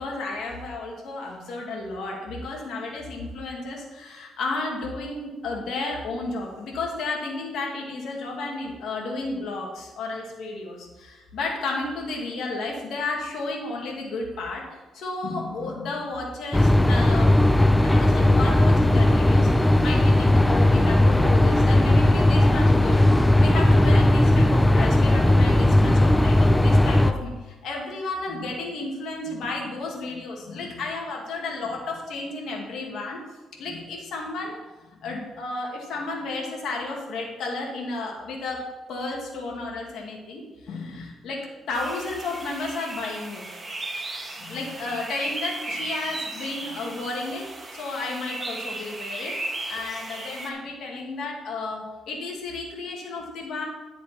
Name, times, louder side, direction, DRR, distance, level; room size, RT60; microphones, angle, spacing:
voice 1, 0.0-14.6 14.9-17.5 17.8-33.2 33.6-34.6 34.9-43.4 44.4-47.5 47.7-49.3 49.7-53.7, left 3 dB, 75° left, -1 dB, 2.2 m, -32 dB
sound 1, 16.5-27.1, left 1 dB, 10° left, 0.6 m, -17 dB
sound 2, 41.7-50.5, right 2 dB, 25° right, 1.7 m, -35 dB
10.5 x 7.1 x 4.5 m, 1.1 s
cardioid pair, 90°, 0 cm